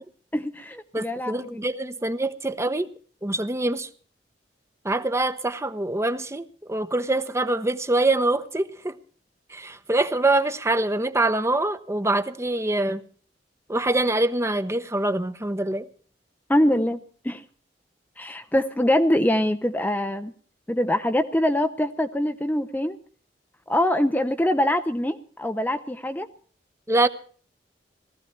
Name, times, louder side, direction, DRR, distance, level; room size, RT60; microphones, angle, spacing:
voice 1, 0.3-1.6 16.5-17.0 17.2-17.4 18.2-20.3 20.7-23.0 23.7-26.3, left 1 dB, 10° left, 0.7 m, -24 dB
voice 2, 0.9-2.9 3.2-3.9 4.8-8.9 9.5-13.0 13.7-15.9 26.9-27.1, right 2 dB, 15° right, 0.9 m, -24 dB
18.5 x 15.0 x 4.4 m
head